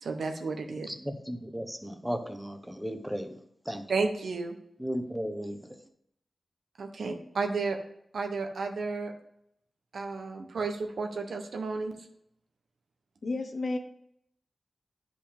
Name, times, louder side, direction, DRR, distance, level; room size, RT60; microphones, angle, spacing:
voice 1, 0.0-0.9 3.9-4.5 6.8-7.8 8.1-9.1 9.9-11.9, right 4 dB, 85° right, 5 dB, 0.9 m, -32 dB
voice 2, 0.8-3.4 3.7-3.8 4.8-5.7, equal, 5° right, 7 dB, 0.9 m, -35 dB
voice 3, 13.2-13.8, left 2 dB, 60° left, 6 dB, 0.9 m, -31 dB
10.5 x 5.0 x 3.5 m, 0.73 s
cardioid pair, 65°, 0 cm